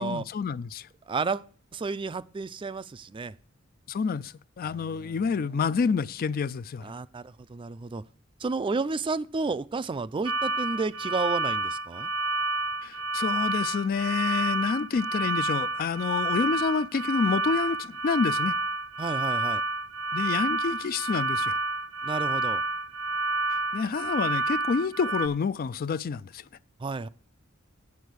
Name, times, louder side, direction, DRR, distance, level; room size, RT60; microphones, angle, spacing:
voice 1, 0.0-0.9 3.9-6.9 12.8-18.5 20.1-21.6 23.5-26.4, left 5 dB, 45° left, 0.4 m, -28 dB
voice 2, 1.1-1.5 1.7-3.3 4.6-5.2 6.8-8.0 8.4-12.1 19.0-19.6 22.0-22.6 26.8-27.1, right 4 dB, 25° right, 0.3 m, -31 dB
sound 1, 10.3-25.3, right 2 dB, 70° right, 0.7 m, -29 dB
8.5 x 7.1 x 6.2 m
head